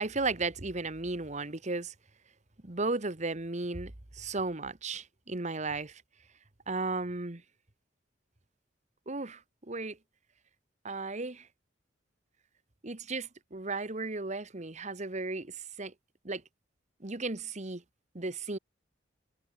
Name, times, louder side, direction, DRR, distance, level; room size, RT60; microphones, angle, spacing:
voice 1, 0.0-1.9 2.6-6.0 6.7-7.4 9.1-10.0 10.8-11.5 12.8-15.9 16.2-16.4 17.0-17.8 18.1-18.6, right 3 dB, 40° right, 1.4 m, -35 dB
head